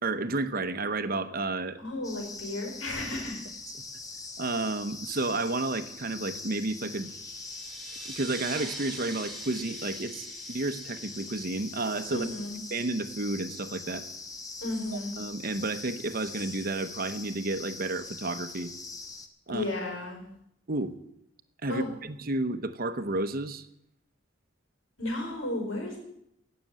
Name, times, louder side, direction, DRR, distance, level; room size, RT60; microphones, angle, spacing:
voice 1, 0.0-1.8 4.4-7.1 8.2-12.3 12.7-14.1 14.9-18.7 19.5-19.6 20.7-20.9 21.6-23.7, right 2 dB, 45° right, 11 dB, 0.9 m, -31 dB
voice 2, 1.8-3.4 12.1-12.6 14.6-15.2 19.5-20.2 21.7-21.9 25.0-26.0, left 2 dB, 90° left, 0 dB, 5.2 m, -33 dB
sound 1, 2.0-19.3, left 3 dB, 15° left, 1.0 m, -42 dB
sound 2, 6.7-13.0, right 1 dB, ahead, 2.7 m, -45 dB
17.0 x 6.8 x 9.0 m, 0.76 s
head